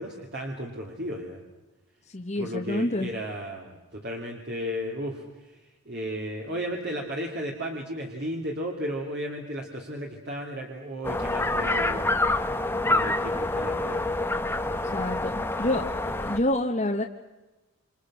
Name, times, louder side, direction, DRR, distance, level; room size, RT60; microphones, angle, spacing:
voice 1, 0.0-1.4 2.3-12.1 12.8-14.1 14.8-15.0, equal, 50° right, 0 dB, 3.0 m, -34 dB
voice 2, 2.1-3.1 14.9-15.9 16.2-17.0, left 1 dB, 30° left, 0 dB, 1.4 m, -27 dB
sound 1, 11.0-16.4, left 2 dB, 10° left, 1.1 m, -27 dB
29.0 x 27.5 x 6.4 m, 1.1 s
head